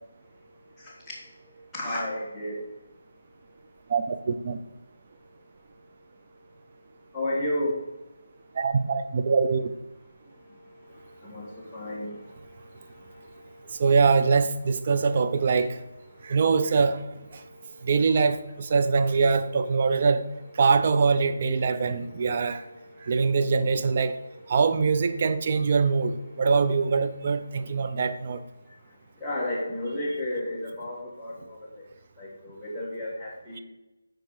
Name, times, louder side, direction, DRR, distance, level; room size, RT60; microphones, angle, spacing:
voice 1, 1.4-2.6 7.1-7.8 10.9-13.8 16.1-16.3 17.5-17.9 21.8-22.3 22.8-23.1 27.5-27.7 29.2-31.8 32.2-33.6, left 1 dB, 5° left, -10 dB, 1.5 m, -34 dB
voice 2, 3.9-4.6 8.6-9.6 13.8-15.7 16.3-17.0 17.9-20.2 20.6-22.6 23.1-24.1 24.5-27.4 27.7-28.4, right 5 dB, 40° right, 10 dB, 0.6 m, -23 dB
10.5 x 3.8 x 4.8 m, 1.0 s
figure-of-eight pair, 165°, 0 cm